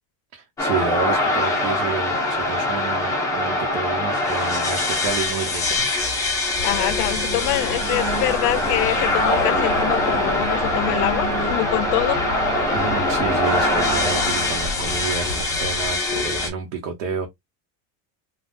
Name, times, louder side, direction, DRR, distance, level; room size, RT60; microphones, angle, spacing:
voice 1, 0.3-5.9 12.7-17.3, right 6 dB, 85° right, 0.9 m, -30 dB
sound 1, 0.6-16.5, left 2 dB, 10° left, 0.4 m, -23 dB
voice 2, 6.6-12.2, left 17 dB, 70° left, 0.5 m, -25 dB
sound 2, 6.6-15.9, left 3 dB, 30° left, 0.8 m, -34 dB
sound 3, 6.6-15.0, right 3 dB, 30° right, 1.0 m, -31 dB
3.5 x 2.3 x 2.4 m
cardioid pair, 170°, 48 cm